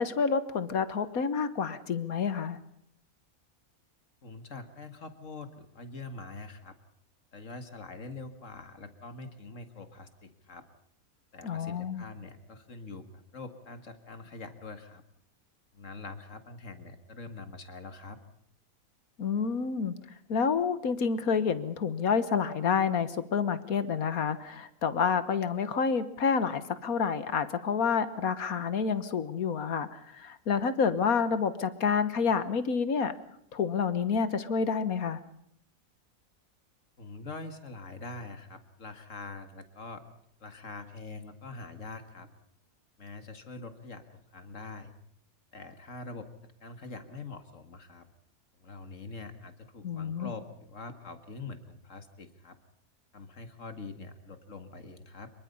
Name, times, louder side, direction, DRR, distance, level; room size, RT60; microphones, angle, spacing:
voice 1, 0.0-2.6 11.4-12.0 19.2-19.9 20.3-33.1 33.5-35.2 49.8-50.3, left 6 dB, 75° left, 13 dB, 1.7 m, -28 dB
voice 2, 4.2-6.7 7.3-10.6 11.3-15.0 15.7-18.2 37.0-40.0 40.4-42.3 43.0-44.0 44.3-44.9 45.5-46.3 46.6-48.1 48.6-52.6 53.1-55.3, left 3 dB, 60° left, 9 dB, 2.3 m, -44 dB
25.5 x 23.0 x 5.5 m, 0.69 s
omnidirectional pair, 1.5 m